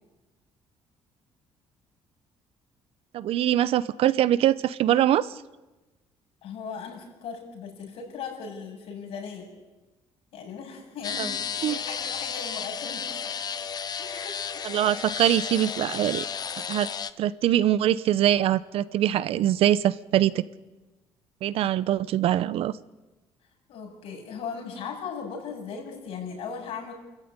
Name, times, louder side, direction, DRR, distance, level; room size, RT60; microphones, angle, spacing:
voice 1, 3.1-5.4 11.2-11.3 11.6-11.8 14.6-16.2 16.7-16.9 17.2-20.4 21.4-22.7, right 12 dB, 70° right, 17 dB, 0.9 m, -23 dB
voice 2, 6.4-9.5 10.3-13.5 14.0-14.8 23.7-26.9, left 6 dB, 75° left, 1 dB, 7.7 m, -38 dB
sound 1, 11.0-17.1, left 7 dB, 40° left, 1.1 m, -33 dB
28.5 x 14.5 x 9.8 m, 1.1 s
cardioid pair, 105°, 10 cm